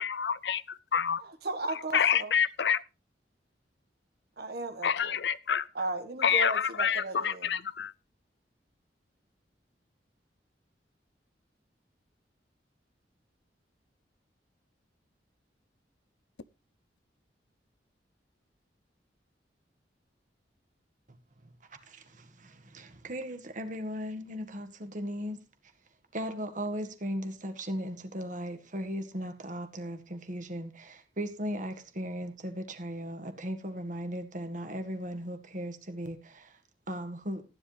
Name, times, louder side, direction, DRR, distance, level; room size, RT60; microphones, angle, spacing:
voice 1, 0.0-1.2 1.9-2.8 4.8-5.7 6.2-7.9, left 8 dB, 70° left, 0.6 m, -27 dB
voice 2, 1.2-2.3 4.4-5.2 5.8-7.5, right 2 dB, 60° right, 1.8 m, -35 dB
voice 3, 21.9-25.4 26.1-36.6 36.9-37.4, equal, 45° right, 1.8 m, -37 dB
15.0 x 10.5 x 3.4 m
head